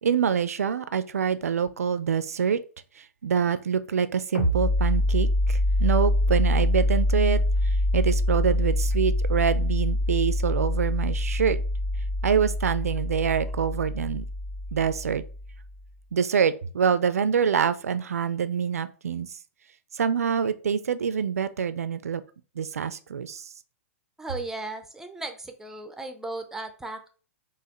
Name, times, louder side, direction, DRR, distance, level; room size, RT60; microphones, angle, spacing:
voice 1, 0.0-2.6 3.0-7.4 7.9-11.6 12.2-14.3 14.7-15.2 16.1-19.3 19.9-22.2 22.6-23.5, right 7 dB, 80° right, 0.3 m, -25 dB
sound 1, 4.3-15.7, left 1 dB, 70° left, 1.8 m, -25 dB
voice 2, 24.2-27.1, right 2 dB, 5° right, 0.5 m, -36 dB
4.0 x 2.4 x 2.9 m
figure-of-eight pair, 110°, 8 cm